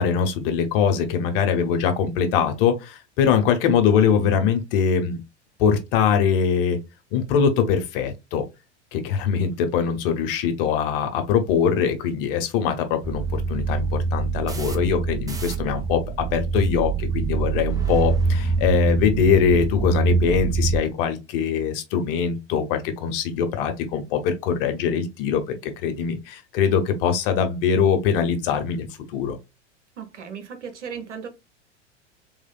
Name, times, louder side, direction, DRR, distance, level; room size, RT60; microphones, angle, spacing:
voice 1, 0.0-5.2 5.6-6.8 7.1-8.4 8.9-16.0 16.3-29.4, left 7 dB, 50° left, 1.0 m, -22 dB
sound 1, 13.0-20.8, right 4 dB, 10° right, 0.6 m, -24 dB
voice 2, 30.0-31.3, right 7 dB, 75° right, 1.1 m, -36 dB
3.6 x 3.3 x 2.3 m
figure-of-eight pair, 90°, 35 cm